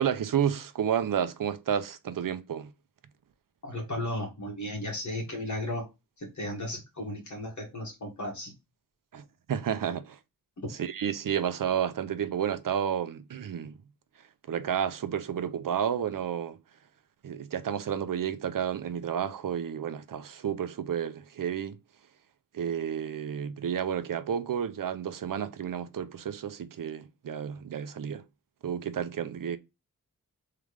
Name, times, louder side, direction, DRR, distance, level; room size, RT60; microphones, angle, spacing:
voice 1, 0.0-2.7 9.1-10.2 10.8-13.8 14.5-16.6 17.2-21.8 22.5-28.2 28.6-29.6, right 8 dB, 65° right, 0.6 m, -31 dB
voice 2, 3.6-5.9 6.2-8.5 10.6-10.7, left 1 dB, 55° left, 2.1 m, -35 dB
3.8 x 3.4 x 3.2 m
wide cardioid pair, 115°, 35 cm